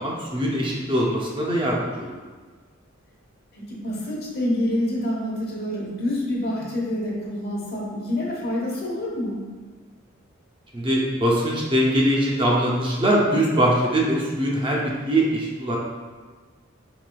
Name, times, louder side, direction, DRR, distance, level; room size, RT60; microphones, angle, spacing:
voice 1, 0.0-2.1 10.7-15.8, right 1 dB, 25° right, -3 dB, 0.5 m, -22 dB
voice 2, 3.5-9.4, left 1 dB, 50° left, -4 dB, 1.1 m, -27 dB
4.8 x 3.3 x 2.2 m, 1.5 s
head